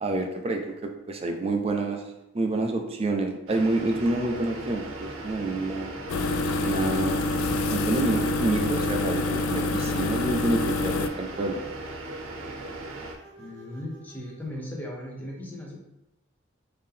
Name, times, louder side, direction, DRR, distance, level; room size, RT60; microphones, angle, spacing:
voice 1, 0.0-2.0 2.3-5.9 6.6-7.2 7.7-11.6, right 2 dB, 30° right, 4 dB, 0.4 m, -28 dB
sound 1, 3.5-13.1, right 2 dB, 90° right, 0.7 m, -38 dB
sound 2, 6.1-11.1, left 2 dB, 85° left, 0.3 m, -27 dB
sound 3, 6.1-14.5, right 4 dB, 60° right, 1.1 m, -51 dB
voice 2, 13.4-15.8, left 1 dB, 10° left, -2 dB, 0.7 m, -37 dB
3.6 x 2.8 x 3.5 m, 0.90 s
head